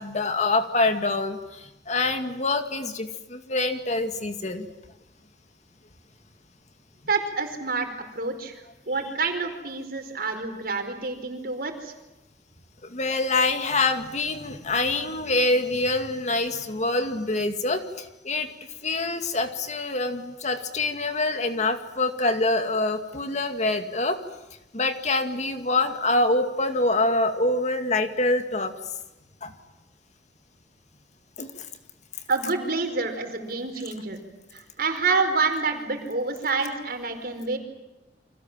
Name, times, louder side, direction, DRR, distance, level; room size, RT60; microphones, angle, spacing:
voice 1, 0.0-4.7 12.8-18.5 18.8-24.2 24.7-28.7 29.4-29.5 31.4-31.5, left 2 dB, 40° left, 7 dB, 2.3 m, -25 dB
voice 2, 7.1-7.9 8.1-11.9 32.3-34.2 34.5-37.6, right 4 dB, 55° right, 6 dB, 4.8 m, -28 dB
30.0 x 25.5 x 7.5 m, 0.98 s
head